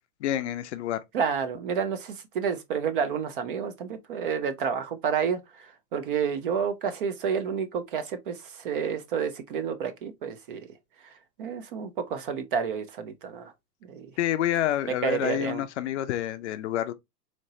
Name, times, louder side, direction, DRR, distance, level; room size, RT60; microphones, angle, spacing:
voice 1, 0.2-1.0 14.2-16.9, left 12 dB, 45° left, 0.5 m, -28 dB
voice 2, 1.1-10.6 11.0-11.1 11.4-13.5 13.8-14.1 15.0-15.6, right 6 dB, 35° right, 0.4 m, -30 dB
4.2 x 2.9 x 2.7 m
hypercardioid pair, 125°, 49 cm